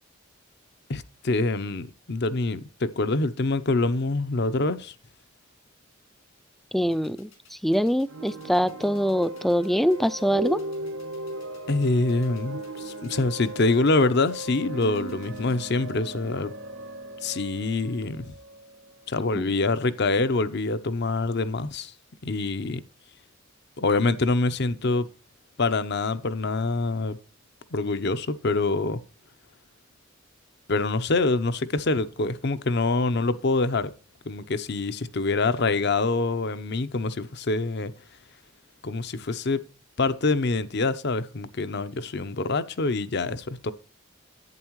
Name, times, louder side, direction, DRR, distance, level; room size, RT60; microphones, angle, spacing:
voice 1, 0.9-4.9 11.7-16.5 17.2-18.3 19.1-21.9 22.2-22.8 23.8-25.1 25.6-27.2 27.7-29.0 30.7-33.9 34.3-37.9 38.8-39.6 40.0-43.7, left 3 dB, 55° left, 0.7 m, -25 dB
voice 2, 6.7-10.6 19.3-19.5, equal, ahead, 0.3 m, -24 dB
sound 1, 6.9-15.5, left 6 dB, 85° left, 5.4 m, -56 dB
sound 2, 8.1-19.7, right 1 dB, 85° right, 1.2 m, -38 dB
11.0 x 8.9 x 3.1 m
head